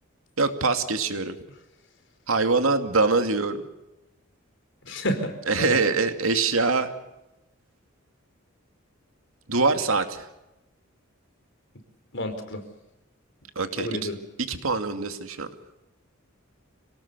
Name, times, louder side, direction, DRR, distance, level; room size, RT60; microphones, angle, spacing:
voice 1, 0.4-1.4 2.3-3.6 5.5-6.9 9.5-10.3 13.6-14.1 14.5-15.5, right 3 dB, 80° right, 7 dB, 2.4 m, -24 dB
voice 2, 4.9-5.3 5.6-5.8 12.1-12.6 13.8-14.2, equal, 60° left, 7 dB, 4.4 m, -29 dB
26.5 x 18.5 x 6.9 m, 0.95 s
head